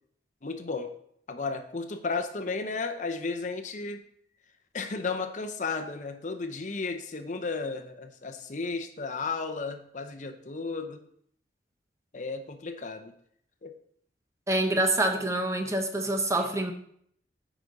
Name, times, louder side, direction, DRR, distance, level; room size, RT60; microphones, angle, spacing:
voice 1, 0.4-0.9 1.3-4.0 4.7-11.0 12.1-13.1 13.6-13.7, left 4 dB, 45° left, 7 dB, 0.6 m, -34 dB
voice 2, 14.5-16.7, right 1 dB, 15° right, 5 dB, 0.7 m, -26 dB
9.6 x 5.0 x 4.0 m, 0.66 s
head